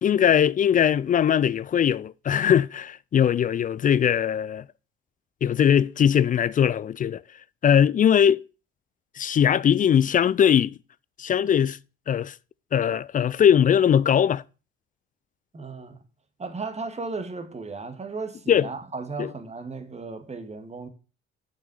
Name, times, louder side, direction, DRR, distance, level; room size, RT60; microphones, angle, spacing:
voice 1, 0.0-4.6 5.4-7.2 7.6-8.4 9.2-10.7 11.2-11.8 12.1-12.3 12.7-14.4 18.5-18.7 19.2-19.3, left 9 dB, 30° left, 0.4 m, -20 dB
voice 2, 15.5-16.0 16.4-20.9, right 4 dB, 25° right, 1.9 m, -35 dB
6.9 x 6.2 x 7.1 m
hypercardioid pair, 65°, 29 cm